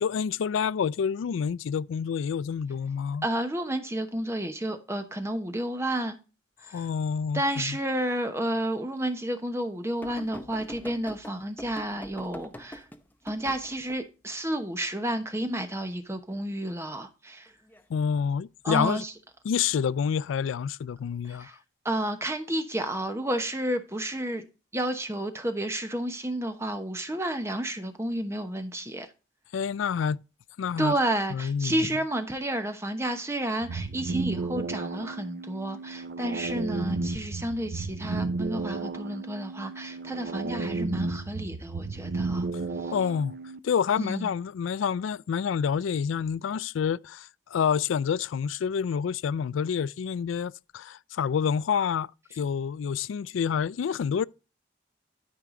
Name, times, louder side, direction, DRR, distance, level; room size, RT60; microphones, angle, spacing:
voice 1, 0.0-3.3 6.7-7.8 17.9-19.0 19.4-21.5 29.5-30.2 30.6-31.0 31.3-31.8 42.9-43.4 43.6-52.1 52.4-54.2, left 7 dB, 85° left, 0.3 m, -28 dB
voice 2, 3.2-6.2 6.6-6.9 7.3-12.8 13.2-17.5 18.6-19.1 21.2-21.6 21.8-24.4 24.7-29.1 30.8-42.5 42.8-42.9 44.0-44.3, right 1 dB, 15° right, 1.0 m, -31 dB
sound 1, 10.0-14.0 17.5-17.8 19.0-19.1, equal, 10° left, 0.7 m, -43 dB
sound 2, 33.6-43.6, right 3 dB, 55° right, 0.6 m, -33 dB
12.5 x 4.8 x 3.7 m
head